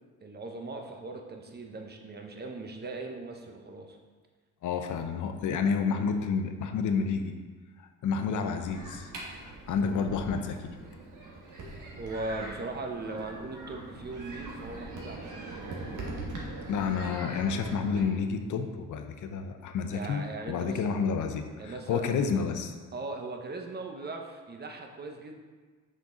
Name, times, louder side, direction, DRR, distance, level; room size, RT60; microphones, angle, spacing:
voice 1, 0.2-4.0 12.0-15.8 19.9-20.8 21.6-22.3 22.9-25.4, right 3 dB, 30° right, 3 dB, 1.0 m, -39 dB
voice 2, 4.6-7.4 7.8-9.1 9.4-10.8 16.7-22.8, left 5 dB, 65° left, 7 dB, 0.8 m, -30 dB
sound 1, 8.6-18.0, right 2 dB, 70° right, 1.7 m, -41 dB
6.0 x 5.3 x 3.9 m, 1.4 s
cardioid pair, 85°, 33 cm